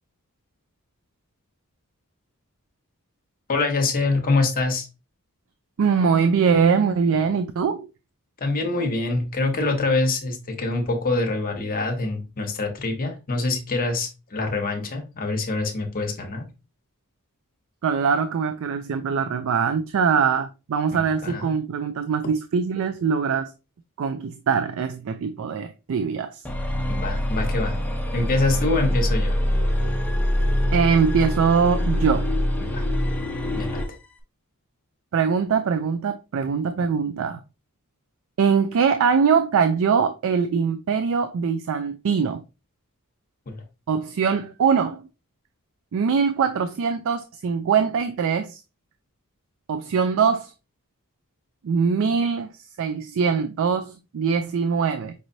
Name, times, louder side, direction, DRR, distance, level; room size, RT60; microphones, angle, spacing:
voice 1, 3.5-4.9 8.4-16.5 20.9-21.5 26.9-27.8 28.1-29.4 32.6-32.8 33.5-33.8 43.5-43.6, left 3 dB, 40° left, 0.9 m, -25 dB
voice 2, 5.8-7.9 17.8-23.5 24.0-26.4 30.7-32.3 35.1-37.4 38.4-42.4 43.9-45.1 45.9-48.6 49.7-50.5 51.6-52.5 52.8-55.1, right 6 dB, 65° right, 0.4 m, -22 dB
sound 1, 26.4-33.9, left 1 dB, 5° left, 0.7 m, -24 dB
5.3 x 3.1 x 2.6 m
head